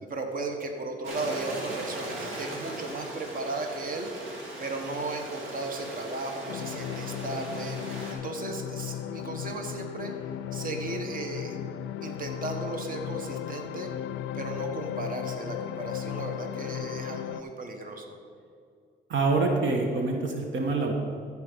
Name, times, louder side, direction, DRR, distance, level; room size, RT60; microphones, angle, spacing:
voice 1, 0.1-4.1 4.6-10.1 10.5-11.6 12.0-13.9 14.3-18.2, right 3 dB, 45° right, 4 dB, 1.3 m, -35 dB
Stream, 1.0-8.1, right 1 dB, 85° right, 1.8 m, -39 dB
sound 1, 6.5-17.4, left 11 dB, 80° left, 0.4 m, -36 dB
voice 2, 19.1-20.9, right 3 dB, 70° right, 2 dB, 1.2 m, -26 dB
14.5 x 4.9 x 5.2 m, 2.3 s
cardioid pair, 90°, 20 cm